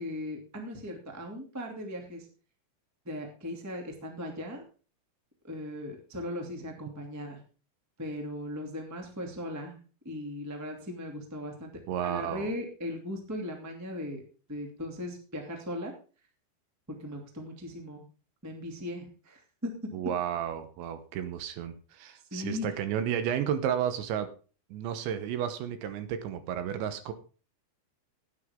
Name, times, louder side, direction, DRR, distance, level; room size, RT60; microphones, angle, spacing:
voice 1, 0.0-2.2 3.0-4.6 5.4-7.4 8.0-9.8 10.0-11.7 12.0-14.2 14.5-15.9 17.0-18.0 18.4-19.7 22.3-22.6, left 1 dB, 10° right, 2 dB, 0.9 m, -38 dB
voice 2, 11.9-12.5 19.9-24.3 24.7-27.1, right 9 dB, 75° right, 10 dB, 3.2 m, -32 dB
16.0 x 9.5 x 3.7 m, 0.37 s
omnidirectional pair, 5.6 m